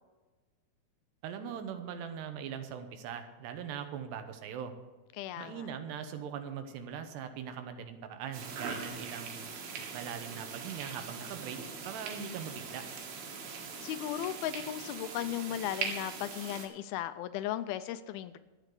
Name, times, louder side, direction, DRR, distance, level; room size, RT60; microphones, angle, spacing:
voice 1, 1.2-4.7 5.4-9.5 9.9-11.6 11.8-12.8, right 7 dB, 90° right, 7 dB, 3.2 m, -41 dB
voice 2, 5.2-5.7 13.8-18.4, left 12 dB, 80° left, 13 dB, 2.3 m, -36 dB
sound 1, 8.3-16.7, right 5 dB, 75° right, 3.8 m, -41 dB
13.5 x 8.4 x 6.7 m, 1.2 s
omnidirectional pair, 4.7 m